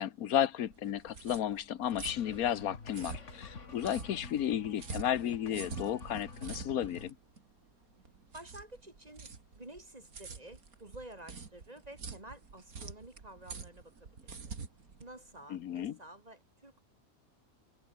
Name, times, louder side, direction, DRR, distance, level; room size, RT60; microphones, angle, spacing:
voice 1, 0.0-7.1 15.5-15.9, left 10 dB, 85° left, 1.4 m, -33 dB
sound 1, 0.7-15.9, right 5 dB, 90° right, 2.9 m, -47 dB
sound 2, 1.9-7.1, left 4 dB, 55° left, 2.6 m, -48 dB
voice 2, 8.3-14.6 15.0-16.9, right 1 dB, 25° right, 4.0 m, -51 dB
omnidirectional pair, 1.5 m